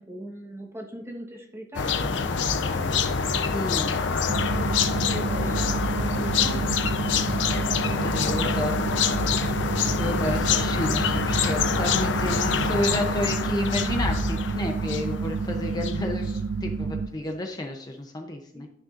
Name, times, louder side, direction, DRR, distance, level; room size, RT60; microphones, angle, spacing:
voice 1, 0.0-2.4 2.6-3.0 3.6-4.2 4.6-6.9 18.5-18.6, equal, 15° right, 1 dB, 1.3 m, -40 dB
sound 1, 1.7-16.1, left 5 dB, 85° left, 0.7 m, -26 dB
voice 2, 3.5-4.0 8.0-8.8 10.0-18.7, left 1 dB, 20° left, 2 dB, 0.7 m, -31 dB
sound 2, 4.3-17.1, right 4 dB, 75° right, 0.4 m, -30 dB
12.0 x 6.4 x 2.5 m, 0.76 s
head